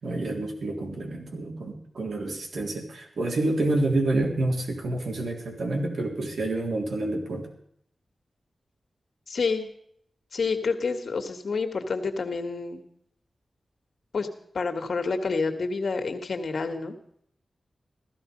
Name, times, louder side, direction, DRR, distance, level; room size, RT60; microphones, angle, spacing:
voice 1, 0.0-7.5, right 2 dB, 85° right, 1 dB, 3.6 m, -28 dB
voice 2, 9.3-9.7 10.3-12.8 14.1-14.3 14.5-17.0, left 4 dB, 65° left, 6 dB, 1.8 m, -28 dB
15.5 x 14.5 x 5.3 m, 0.67 s
wide cardioid pair, 150°, 0 cm